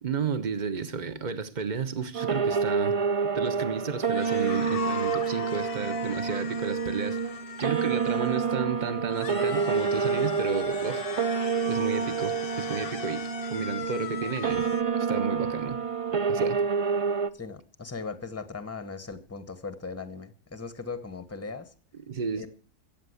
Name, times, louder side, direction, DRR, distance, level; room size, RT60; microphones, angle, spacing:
voice 1, 0.0-3.0 3.3-7.3 7.6-11.3 11.6-14.7 15.0-15.8 16.3-16.6 22.1-22.5, right 5 dB, 35° right, 12 dB, 1.2 m, -32 dB
sound 1, 2.1-17.3, right 5 dB, 50° right, 0.4 m, -28 dB
sound 2, 4.1-8.6 9.1-14.8, left 8 dB, 45° left, 0.9 m, -40 dB
voice 2, 17.3-21.7 22.3-22.5, left 4 dB, 10° left, 12 dB, 1.0 m, -38 dB
14.5 x 8.8 x 8.0 m, 0.42 s
omnidirectional pair, 1.6 m